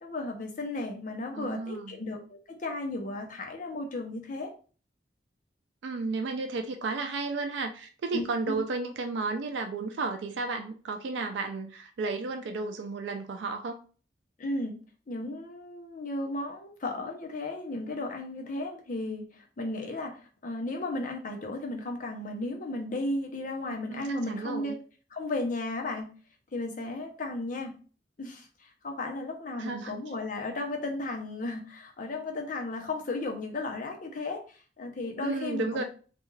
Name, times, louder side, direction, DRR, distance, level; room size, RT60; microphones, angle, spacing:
voice 1, 0.0-4.5 8.1-8.6 14.4-14.8 15.1-24.8 25.1-26.1 26.5-27.8 28.2-35.8, left 2 dB, 45° left, 2 dB, 0.6 m, -35 dB
voice 2, 1.3-1.9 5.8-13.8 23.9-24.8 29.6-30.0 35.2-35.8, right 3 dB, 80° right, 5 dB, 0.4 m, -33 dB
2.4 x 2.3 x 3.1 m, 0.39 s
head